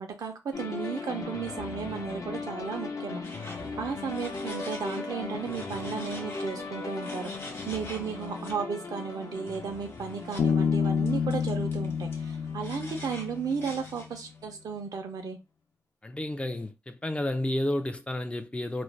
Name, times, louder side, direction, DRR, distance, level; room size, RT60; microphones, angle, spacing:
voice 1, 0.0-3.2 3.8-15.4, right 6 dB, 80° right, 0.7 m, -34 dB
sound 1, 0.5-14.3, left 3 dB, 60° left, 0.7 m, -38 dB
sound 2, 3.2-5.1 5.4-8.6 9.4-10.6 11.1-14.3, left 1 dB, 45° left, 1.0 m, -47 dB
Bass guitar, 10.4-13.9, left 6 dB, 90° left, 0.3 m, -29 dB
voice 2, 16.0-18.8, left 1 dB, 20° left, 0.4 m, -31 dB
2.5 x 2.1 x 3.2 m
cardioid pair, 70°, 6 cm